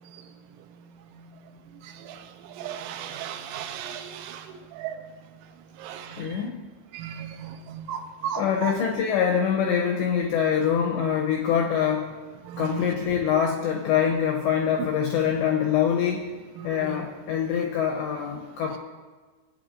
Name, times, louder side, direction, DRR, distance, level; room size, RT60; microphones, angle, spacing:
voice 1, 2.6-4.0 5.8-6.0 7.0-7.5 7.9-8.4 12.5-12.6, right 9 dB, 90° right, 7 dB, 3.4 m, -34 dB
voice 2, 6.1-6.6 8.4-12.1 12.6-16.4 16.6-18.8, left 8 dB, 80° left, 0 dB, 2.6 m, -24 dB
17.5 x 8.8 x 2.6 m, 1.4 s
omnidirectional pair, 5.9 m